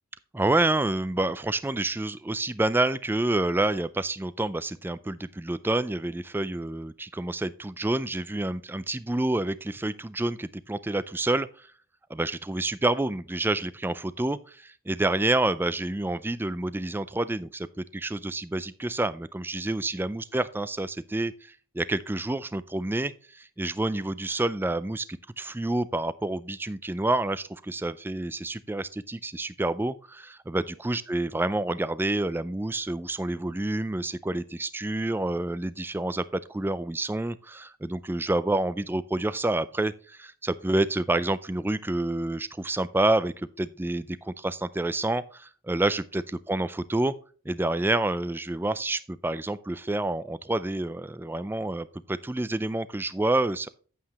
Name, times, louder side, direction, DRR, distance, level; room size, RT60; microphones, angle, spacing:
voice 1, 0.3-11.7 12.1-47.1 47.5-53.7, right 2 dB, 10° right, 14 dB, 0.3 m, -28 dB
9.5 x 8.7 x 2.9 m, 0.40 s
head